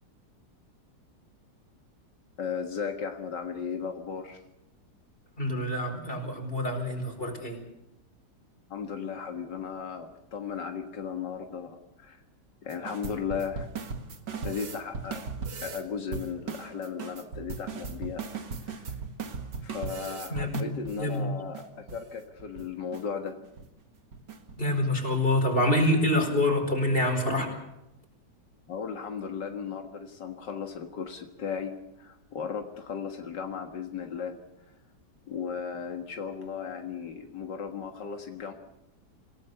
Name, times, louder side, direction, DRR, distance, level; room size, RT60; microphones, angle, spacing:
voice 1, 2.4-4.4 8.7-12.2 12.6-13.7 14.4-15.2 15.6-18.2 18.6-18.9 19.6-23.4 28.7-31.7 32.0-34.4 35.3-38.5, left 6 dB, 85° left, 4 dB, 2.3 m, -36 dB
voice 2, 5.4-7.6 20.3-20.7 21.0-21.3 24.6-27.5, left 1 dB, 30° left, 4 dB, 4.9 m, -26 dB
sound 1, 12.7-15.8 16.1-21.1 21.5-21.6 21.9-22.0 22.4-22.6 22.9-23.0 23.4-23.7 24.1-24.6, right 5 dB, 80° right, 2.4 m, -38 dB
27.0 x 18.0 x 6.8 m, 0.90 s
omnidirectional pair, 1.8 m